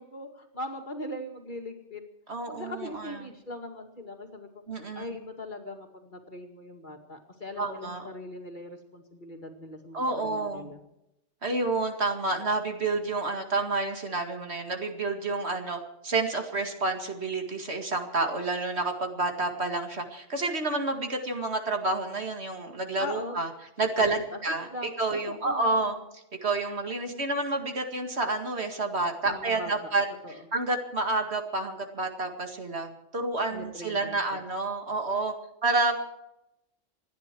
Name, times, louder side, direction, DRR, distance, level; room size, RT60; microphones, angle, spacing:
voice 1, 0.0-2.0 2.5-4.5 4.9-10.8 23.0-23.4 24.0-24.4 24.7-26.0 29.2-29.7 30.2-30.5 33.5-34.4, left 1 dB, 40° left, 3 dB, 2.4 m, -40 dB
voice 2, 2.3-3.2 4.7-5.0 7.6-8.0 9.9-10.7 11.4-23.5 23.8-24.7 25.0-25.9 26.4-30.0 30.5-35.3 35.6-35.9, right 3 dB, 55° right, 4 dB, 2.3 m, -29 dB
28.0 x 10.5 x 4.6 m, 0.86 s
omnidirectional pair, 1.3 m